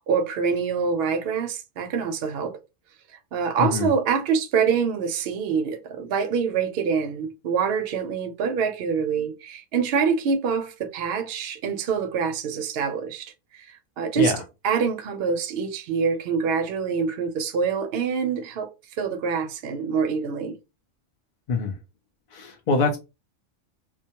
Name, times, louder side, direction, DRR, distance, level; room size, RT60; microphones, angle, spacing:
voice 1, 0.0-2.6 3.3-14.3 14.6-18.7 19.0-20.6, right 6 dB, 60° right, 0.7 m, -25 dB
voice 2, 3.6-3.9 14.2-14.4 21.5-21.7 22.3-23.0, left 3 dB, 65° left, 0.4 m, -24 dB
2.2 x 2.2 x 2.8 m
omnidirectional pair, 1.3 m